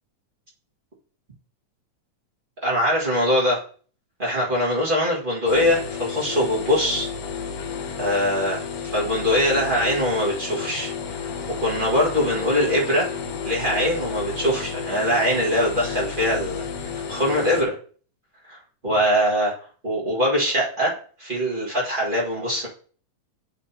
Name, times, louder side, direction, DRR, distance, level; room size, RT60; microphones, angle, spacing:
voice 1, 2.6-3.6 4.2-7.1 8.0-10.9 11.6-13.1 13.4-17.8 18.5-18.6 18.8-19.5 19.8-22.7, equal, 25° right, -5 dB, 1.2 m, -22 dB
sound 1, 5.5-17.6, left 6 dB, 90° left, 2.5 m, -32 dB
10.5 x 3.8 x 2.8 m, 0.43 s
omnidirectional pair, 3.7 m